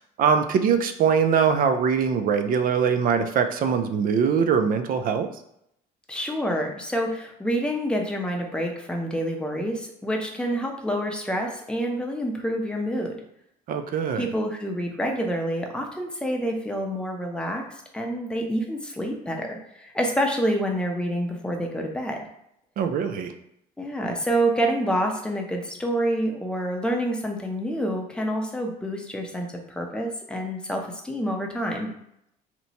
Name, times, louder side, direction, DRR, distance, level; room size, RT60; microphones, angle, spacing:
voice 1, 0.2-5.3 13.7-14.3 22.8-23.3, right 6 dB, 55° right, 8 dB, 0.4 m, -22 dB
voice 2, 6.1-13.1 14.1-17.6 17.9-22.2 23.8-31.9, equal, 5° left, 1 dB, 0.6 m, -27 dB
2.9 x 2.1 x 4.1 m, 0.76 s
cardioid pair, 110°, 17 cm